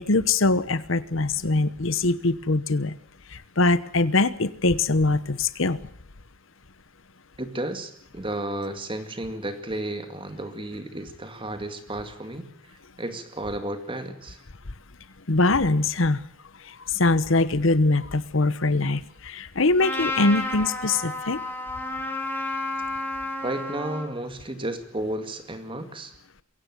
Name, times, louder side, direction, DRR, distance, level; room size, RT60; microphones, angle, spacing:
voice 1, 0.0-3.0 3.3-5.8 15.3-16.2 16.9-21.4, left 2 dB, 65° left, 16 dB, 1.1 m, -22 dB
voice 2, 7.4-12.5 13.0-14.4 23.4-26.1, right 1 dB, 25° right, 9 dB, 2.3 m, -33 dB
Trumpet, 19.8-24.1, left 2 dB, 10° left, 3.6 m, -31 dB
23.0 x 16.5 x 9.4 m, 0.63 s
head